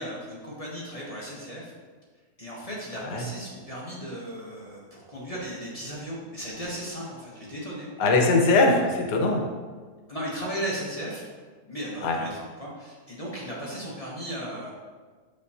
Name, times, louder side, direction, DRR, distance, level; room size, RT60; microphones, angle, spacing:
voice 1, 0.0-1.7 2.4-7.9 10.1-11.2 11.7-12.3 12.6-14.7, equal, 25° left, -6 dB, 1.0 m, -36 dB
voice 2, 2.9-3.3 8.0-9.5 12.0-12.2, left 3 dB, 90° left, 2 dB, 1.4 m, -21 dB
6.9 x 5.4 x 2.8 m, 1.5 s
omnidirectional pair, 1.7 m